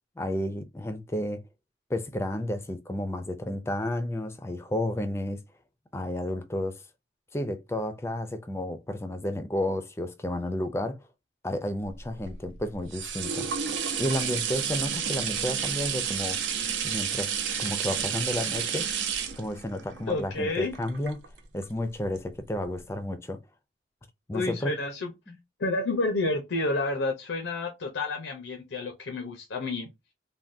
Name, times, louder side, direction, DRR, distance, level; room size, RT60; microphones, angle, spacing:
voice 1, 0.2-1.4 1.9-5.4 5.9-6.8 7.3-11.0 11.4-13.5 14.0-16.4 16.8-17.3 17.6-18.9 19.4-21.2 21.5-23.4 24.3-24.7 25.3-25.4, left 1 dB, 15° left, 0.4 m, -31 dB
sound 1, 11.9-21.6 22.2-22.3, right 8 dB, 80° right, 0.6 m, -31 dB
voice 2, 20.1-20.8 24.3-25.1 25.6-29.9, left 2 dB, 90° left, 0.6 m, -30 dB
3.4 x 2.2 x 2.5 m
head